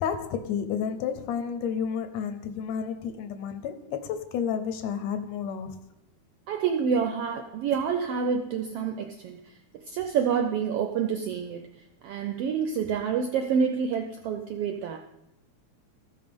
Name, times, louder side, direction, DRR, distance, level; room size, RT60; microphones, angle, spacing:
voice 1, 0.0-5.8, left 7 dB, 75° left, 9 dB, 1.8 m, -31 dB
voice 2, 6.5-9.4 9.9-11.7 12.0-15.0, right 6 dB, 80° right, 6 dB, 1.3 m, -27 dB
14.0 x 5.4 x 5.2 m, 0.87 s
omnidirectional pair, 3.4 m